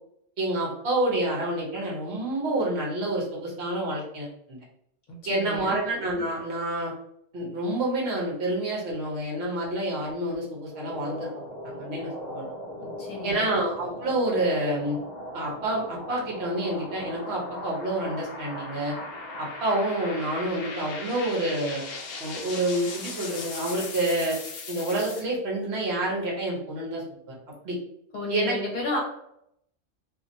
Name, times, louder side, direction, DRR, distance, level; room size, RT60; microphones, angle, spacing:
voice 1, 0.4-4.6 5.2-6.9 7.3-11.3 11.6-12.5 13.2-15.0 15.3-18.9 19.4-21.8 22.2-24.4 24.7-27.3 27.6-27.8 28.3-28.6 28.9-29.0, right 1 dB, 60° right, -2 dB, 1.1 m, -28 dB
voice 2, 5.1-5.8 12.8-13.5 28.1-29.0, left 2 dB, 45° left, -1 dB, 0.9 m, -32 dB
sound 1, 10.6-25.2, left 2 dB, 60° left, 0.4 m, -38 dB
2.7 x 2.5 x 2.6 m, 0.74 s
omnidirectional pair, 1.3 m